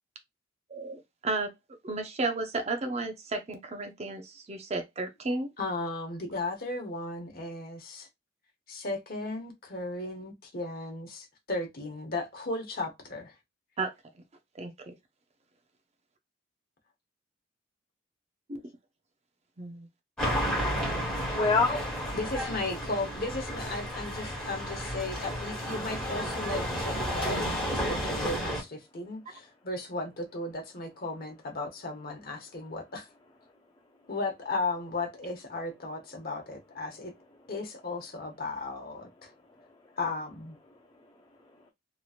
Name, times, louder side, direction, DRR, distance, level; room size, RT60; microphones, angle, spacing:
voice 1, 0.7-1.5 1.8-5.5 13.8-13.9 14.5-14.9 18.5-18.6 19.6-19.9, right 3 dB, 35° right, 0.5 m, -33 dB
voice 2, 5.6-8.1 8.7-13.3 22.1-33.1 34.1-37.1 37.5-39.3 40.0-40.6, left 2 dB, 50° left, 1.0 m, -35 dB
sound 1, 20.2-28.6, equal, 5° left, 1.3 m, -32 dB
voice 3, 21.3-22.0 39.6-39.9 40.7-41.7, left 4 dB, 20° left, 0.4 m, -30 dB
3.0 x 2.8 x 2.4 m
head